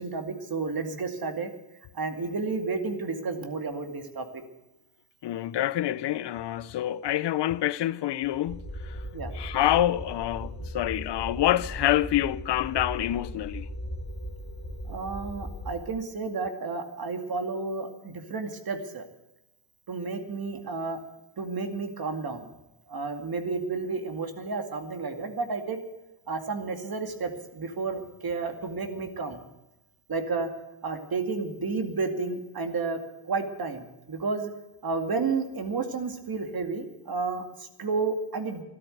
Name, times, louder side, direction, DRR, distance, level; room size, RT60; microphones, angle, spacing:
voice 1, 0.0-1.5 1.9-4.2 9.1-9.3 14.9-19.0 19.9-21.0 21.4-22.4 22.9-25.8 26.3-29.4 30.1-30.5 30.8-33.0 33.3-34.5 34.8-38.6, right 4 dB, 50° right, 2.3 m, -31 dB
voice 2, 5.2-9.0 9.3-13.7, left 13 dB, 65° left, 0.7 m, -27 dB
sound 1, 8.5-15.8, equal, 25° left, 2.5 m, -38 dB
13.5 x 12.5 x 8.0 m
cardioid pair, 80°, 45 cm